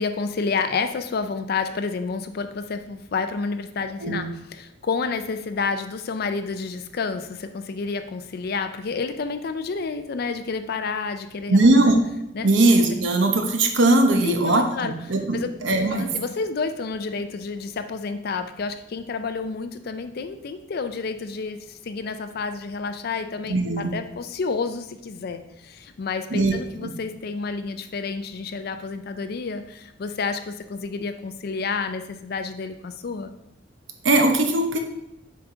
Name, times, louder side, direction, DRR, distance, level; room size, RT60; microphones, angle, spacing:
voice 1, 0.0-11.7 12.3-12.5 14.2-14.9 15.3-15.5 15.8-33.3, left 4 dB, 55° left, 9 dB, 0.4 m, -30 dB
voice 2, 11.5-12.0 12.4-16.1 23.5-23.9 26.3-26.6 26.8-26.9 34.0-34.8, right 2 dB, 75° right, 5 dB, 0.9 m, -19 dB
7.1 x 4.7 x 3.8 m, 0.83 s
head